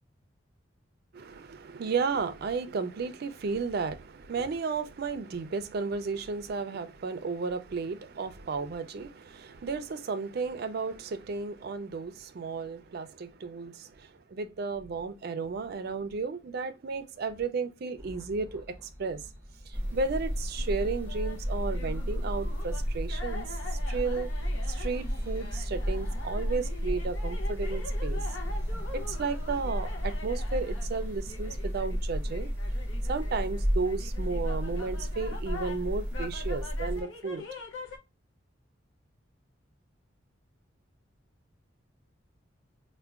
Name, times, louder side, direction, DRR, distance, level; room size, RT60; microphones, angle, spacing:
voice 1, 1.1-19.3 19.7-23.6 23.9-24.3 24.7-28.4 28.9-32.5 33.1-37.5, right 4 dB, 50° right, 0.4 m, -33 dB
sound 1, 18.0-31.7, equal, 10° left, 1.3 m, -49 dB
sound 2, 19.7-37.0, equal, 10° right, 0.7 m, -32 dB
sound 3, 20.6-38.0, left 3 dB, 80° left, 0.6 m, -45 dB
4.4 x 2.2 x 2.3 m
head